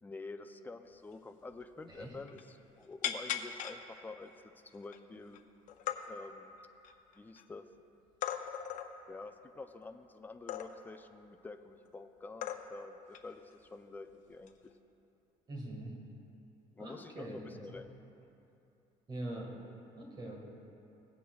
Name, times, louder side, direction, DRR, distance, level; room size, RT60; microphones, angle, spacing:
voice 1, 0.0-4.3 4.7-5.4 6.1-6.6 7.2-7.7 9.1-14.6 16.8-17.9 18.2-18.3, left 3 dB, 10° left, 8 dB, 0.4 m, -48 dB
sound 1, 1.1-1.2 1.5-1.6 1.9-2.5 3.0-3.8 4.4-4.5 4.8-5.4 5.7-6.0 6.6-7.4 8.2-8.9 10.5-10.9 11.9-12.0 12.4-12.9 13.1-13.3 14.4-14.7, left 10 dB, 65° left, 0.6 m, -38 dB
voice 2, 15.5-16.0 16.8-17.9 19.1-19.5 20.0-20.4, right 1 dB, 30° right, -1 dB, 1.7 m, -43 dB
17.0 x 8.3 x 2.3 m, 2.8 s
cardioid pair, 130°, 14 cm